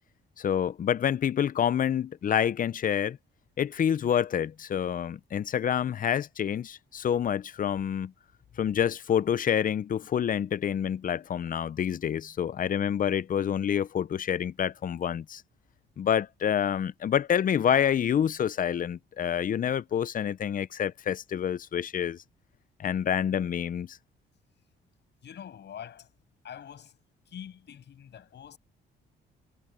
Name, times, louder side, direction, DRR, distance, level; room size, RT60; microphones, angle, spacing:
voice 1, 0.4-3.2 3.6-8.1 8.6-15.4 16.0-22.2 22.8-24.0, left 9 dB, 45° left, 0.6 m, -27 dB
voice 2, 8.5-8.8 25.2-26.1 26.4-27.0 27.3-28.6, left 9 dB, 60° left, 7.9 m, -45 dB
cardioid pair, 90°, 20 cm